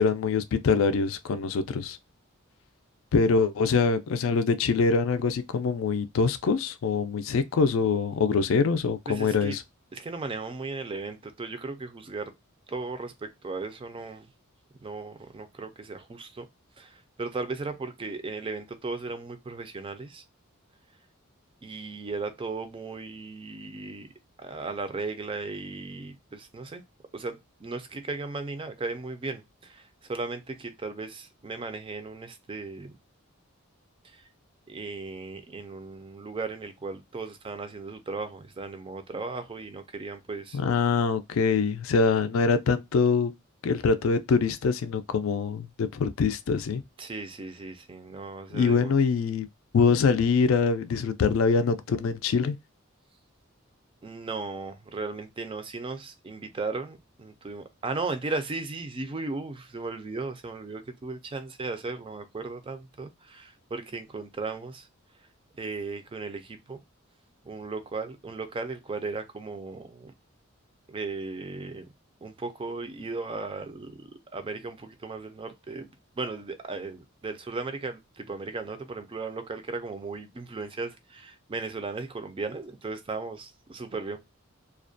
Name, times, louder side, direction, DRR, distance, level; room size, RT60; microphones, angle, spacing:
voice 1, 0.0-2.0 3.1-9.6 40.5-43.3 43.6-46.8 48.5-49.5 49.7-52.6, left 5 dB, 65° left, 0.4 m, -24 dB
voice 2, 9.1-9.6 9.9-12.3 12.7-14.3 14.8-16.5 16.8-20.2 21.6-24.1 24.4-26.8 27.1-33.0 34.0-34.2 34.7-40.6 47.0-48.9 54.0-64.9 65.6-66.8 67.4-70.1 70.9-71.9 72.2-84.2, right 3 dB, 25° right, 0.4 m, -36 dB
2.4 x 2.1 x 2.4 m
head